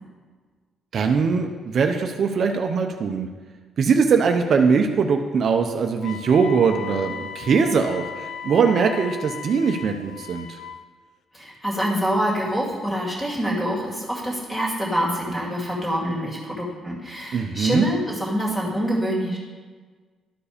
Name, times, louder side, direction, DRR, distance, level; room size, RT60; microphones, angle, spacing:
voice 1, 0.9-3.3 3.8-10.6 17.3-17.9, right 5 dB, 55° right, 4 dB, 0.6 m, -21 dB
Wind instrument woodwind instrument, 6.0-10.8, left 8 dB, 65° left, 0.5 m, -37 dB
voice 2, 11.3-19.4, equal, 10° left, -3 dB, 2.4 m, -25 dB
12.0 x 4.8 x 5.1 m, 1.5 s
cardioid pair, 120°, 0 cm